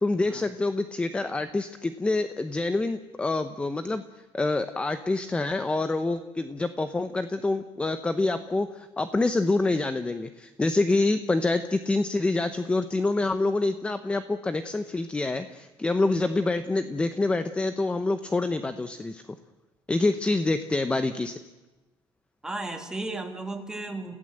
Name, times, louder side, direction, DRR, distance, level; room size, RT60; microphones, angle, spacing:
voice 1, 0.0-4.0 4.3-19.2 19.9-21.4, left 2 dB, 10° left, 10 dB, 0.8 m, -26 dB
voice 2, 22.4-24.1, right 2 dB, 5° right, 4 dB, 2.4 m, -34 dB
29.5 x 16.0 x 7.8 m, 1.1 s
cardioid pair, 155°, 10 cm